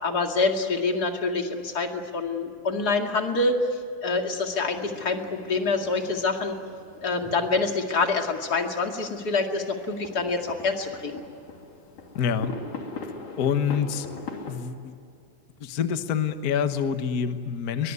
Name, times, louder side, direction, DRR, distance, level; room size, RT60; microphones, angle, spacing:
voice 1, 0.0-3.7 4.0-6.6 7.0-11.2, left 3 dB, 35° left, 3 dB, 2.4 m, -26 dB
sound 1, 4.6-14.5, left 4 dB, 85° left, 4.6 m, -42 dB
voice 2, 12.1-12.5 13.4-14.1 14.5-15.0 15.6-17.9, left 7 dB, 55° left, 9 dB, 1.0 m, -26 dB
22.5 x 22.0 x 9.7 m, 2.5 s
omnidirectional pair, 3.6 m